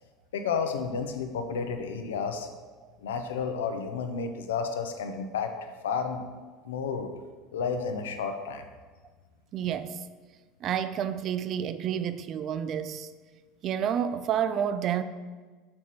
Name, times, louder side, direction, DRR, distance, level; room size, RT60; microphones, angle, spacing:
voice 1, 0.3-2.5 3.0-6.2 6.6-7.1 7.5-8.6, left 5 dB, 90° left, 0.6 m, -31 dB
voice 2, 9.5-10.0 10.6-13.1 13.6-15.0, right 9 dB, 50° right, 0.4 m, -29 dB
6.0 x 4.4 x 4.2 m
hypercardioid pair, 90°, 0 cm